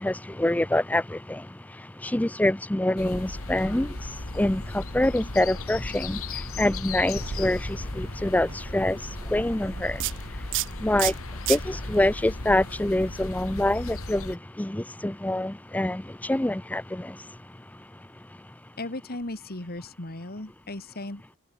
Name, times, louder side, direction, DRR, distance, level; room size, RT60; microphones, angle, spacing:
voice 1, 0.0-10.4 10.7-17.2, left 1 dB, 5° left, 0.6 m, -26 dB
sound 1, 3.0-14.4, left 2 dB, 70° left, 2.6 m, -36 dB
sound 2, 7.2-13.8, right 12 dB, 60° right, 0.8 m, -36 dB
voice 2, 18.8-21.4, left 2 dB, 45° left, 2.5 m, -36 dB
head